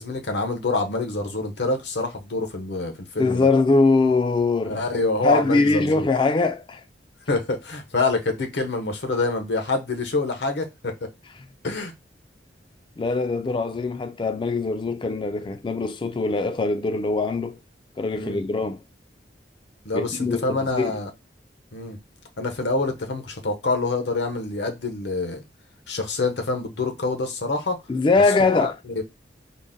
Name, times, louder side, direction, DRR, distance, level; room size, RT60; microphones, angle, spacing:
voice 1, 0.0-3.5 4.7-6.1 7.3-11.1 11.6-11.9 18.2-18.4 19.8-21.1 21.7-22.0 22.4-25.4 25.9-27.8 28.4-28.7, left 3 dB, 75° left, 0.8 m, -26 dB
voice 2, 3.2-4.8 5.2-6.8 13.0-17.6 18.0-18.8 19.9-21.0 27.9-28.7, left 3 dB, 25° left, 0.3 m, -22 dB
3.9 x 2.1 x 3.6 m
head